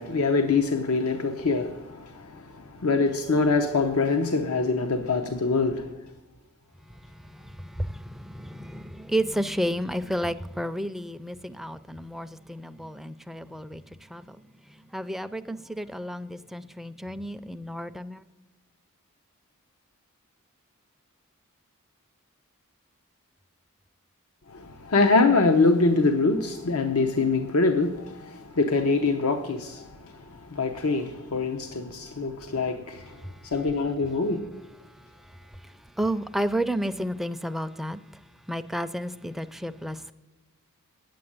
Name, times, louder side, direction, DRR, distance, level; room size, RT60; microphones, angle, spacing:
voice 1, 0.0-5.9 24.5-33.1 33.4-34.4, left 3 dB, 85° left, 0.8 m, -24 dB
voice 2, 6.9-18.2 33.1-33.5 34.8-38.0 38.5-40.1, equal, ahead, 0.4 m, -32 dB
9.5 x 7.7 x 8.6 m
head